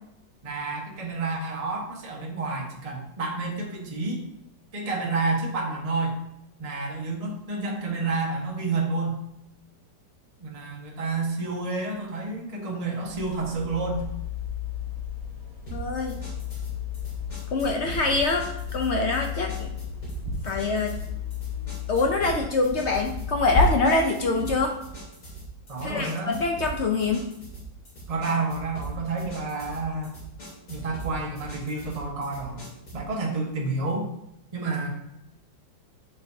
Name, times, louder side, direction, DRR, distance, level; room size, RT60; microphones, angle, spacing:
voice 1, 0.4-4.2 4.7-6.2 6.6-9.2 10.4-14.1 25.7-26.4 28.1-30.2 30.7-32.6 32.9-34.1 34.5-34.9, right 3 dB, 25° right, -2 dB, 1.0 m, -29 dB
sound 1, 13.1-23.7, left 6 dB, 20° left, 1.6 m, -33 dB
voice 2, 15.7-16.2 17.5-19.7 20.4-21.0 21.9-24.8 25.8-27.3, left 3 dB, 70° left, 3 dB, 0.6 m, -25 dB
sound 2, 15.7-33.1, right 3 dB, 50° left, 2.7 m, -40 dB
7.5 x 5.5 x 2.7 m, 0.81 s
omnidirectional pair, 1.9 m